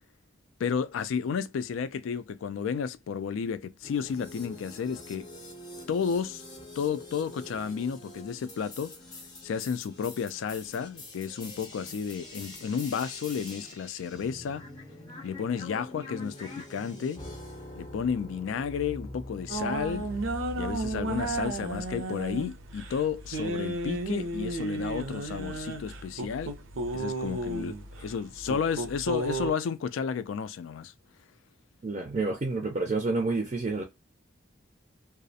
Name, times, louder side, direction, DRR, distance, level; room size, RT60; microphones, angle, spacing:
voice 1, 0.6-5.3 5.9-6.4 6.8-9.0 9.4-14.6 15.2-17.2 17.8-20.1 20.6-26.5 26.9-30.9, left 6 dB, 80° left, 0.3 m, -32 dB
sound 1, 3.8-21.8, left 1 dB, 20° left, 0.6 m, -44 dB
sound 2, 19.5-29.5, right 2 dB, 90° right, 0.5 m, -34 dB
voice 2, 31.8-33.8, right 3 dB, 35° right, 0.4 m, -29 dB
2.4 x 2.0 x 2.6 m
head